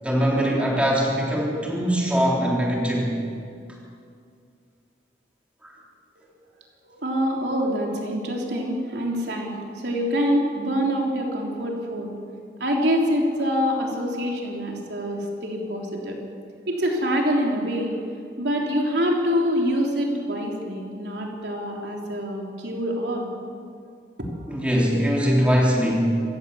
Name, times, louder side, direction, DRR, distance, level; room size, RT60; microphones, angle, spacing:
voice 1, 0.0-3.2 24.5-26.2, equal, 5° right, -3 dB, 3.7 m, -22 dB
voice 2, 6.8-12.1 12.6-16.2 16.7-17.9 18.4-23.3, equal, 75° right, -1 dB, 3.5 m, -25 dB
26.5 x 16.0 x 7.2 m, 2.3 s
head